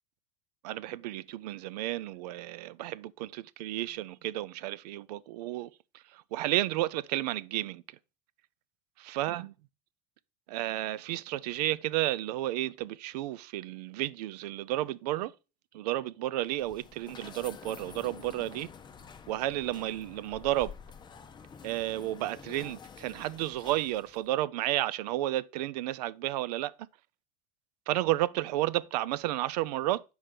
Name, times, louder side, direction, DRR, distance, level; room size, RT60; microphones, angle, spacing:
voice 1, 0.6-5.7 6.1-7.8 9.1-9.5 10.5-15.3 15.7-18.7 19.3-20.8 21.6-26.7 27.9-30.0, right 15 dB, 80° right, 0.5 m, -32 dB
sound 1, 16.4-24.3, left 6 dB, 20° left, 0.7 m, -49 dB
5.0 x 4.8 x 5.7 m
hypercardioid pair, 95°, 20 cm